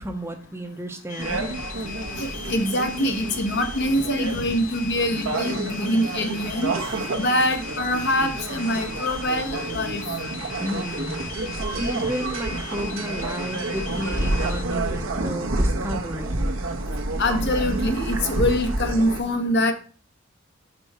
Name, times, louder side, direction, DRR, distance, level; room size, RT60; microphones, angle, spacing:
voice 1, 0.0-1.5 10.6-11.2 11.8-16.4, equal, 15° right, 5 dB, 0.7 m, -32 dB
sound 1, 1.1-14.6, left 7 dB, 40° left, 0.4 m, -38 dB
sound 2, 1.2-19.2, right 2 dB, 80° right, 0.9 m, -29 dB
voice 2, 2.2-6.7 7.2-10.0 17.2-19.7, left 1 dB, 60° left, 6 dB, 0.9 m, -24 dB
5.4 x 4.6 x 4.2 m, 0.40 s
head